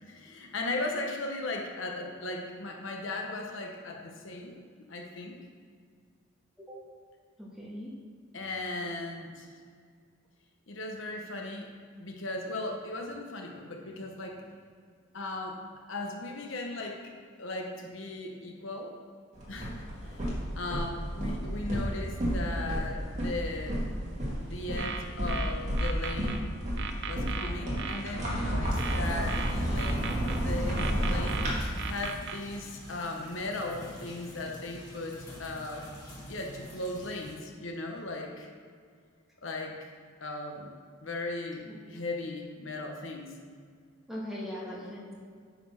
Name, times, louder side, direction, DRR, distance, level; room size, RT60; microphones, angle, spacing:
voice 1, 0.0-4.5 4.9-5.4 8.3-9.5 10.7-11.7 12.0-14.4 15.1-15.6 15.9-17.0 17.4-18.9 19.5-20.2 20.5-23.8 24.4-26.5 27.1-35.9 36.3-38.5 39.4-39.7 40.2-40.7 41.0-43.3, left 2 dB, 70° left, 1 dB, 1.0 m, -37 dB
voice 2, 7.4-7.9 44.1-45.1, equal, ahead, -5 dB, 1.6 m, -39 dB
sound 1, 19.3-31.5, equal, 35° right, 2.0 m, -31 dB
sound 2, 24.6-26.4 26.8-28.0 28.8-30.4 30.8-32.4, right 7 dB, 55° right, 0.6 m, -37 dB
sound 3, 28.7-37.3, equal, 20° left, 1.7 m, -47 dB
9.4 x 4.2 x 5.8 m, 2.1 s
head